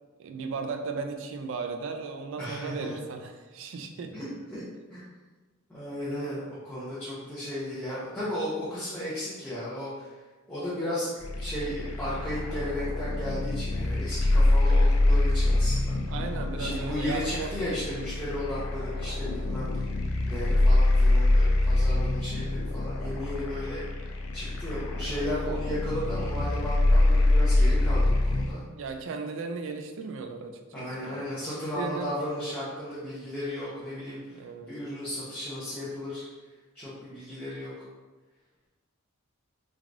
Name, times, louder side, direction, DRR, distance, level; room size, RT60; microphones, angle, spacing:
voice 1, 0.2-4.1 16.1-17.5 28.8-31.2 31.5-32.1 34.3-34.7, right 4 dB, 65° right, 5 dB, 0.3 m, -36 dB
voice 2, 2.4-2.9 4.1-4.6 4.9-5.1 5.7-10.1 10.5-16.0 16.6-19.9 20.3-23.8 24.3-28.6 30.7-36.2 36.7-37.7, left 1 dB, 10° left, -10 dB, 0.5 m, -35 dB
sound 1, 11.2-28.5, left 2 dB, 85° left, 0.4 m, -25 dB
3.2 x 2.3 x 2.5 m, 1.3 s
head